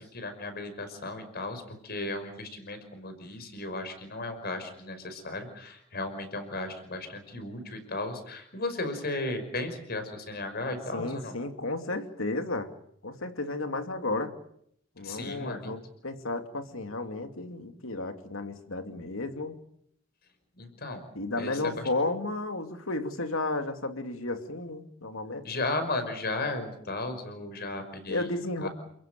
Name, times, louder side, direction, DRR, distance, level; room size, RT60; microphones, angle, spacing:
voice 1, 0.0-11.4 15.0-15.7 20.6-21.0 21.4-21.8 25.4-28.3 28.6-28.7, left 2 dB, 50° left, 8 dB, 5.5 m, -35 dB
voice 2, 10.9-12.7 13.0-14.3 15.0-19.6 21.1-25.5 28.1-28.7, left 2 dB, 85° left, 6 dB, 2.7 m, -33 dB
29.5 x 15.5 x 9.3 m, 0.73 s
head